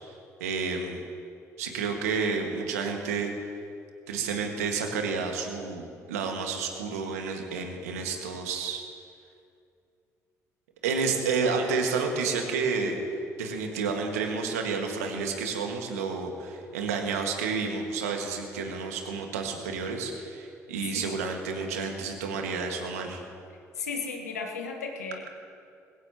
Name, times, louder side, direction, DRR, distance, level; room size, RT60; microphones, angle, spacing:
voice 1, 0.4-0.9 1.6-3.3 4.1-8.8 10.8-13.0 13.4-23.2, right 5 dB, 80° right, 3 dB, 1.9 m, -30 dB
voice 2, 23.7-25.3, left 4 dB, 85° left, 2 dB, 1.4 m, -35 dB
21.5 x 16.5 x 3.0 m, 2.4 s
figure-of-eight pair, 50°, 8 cm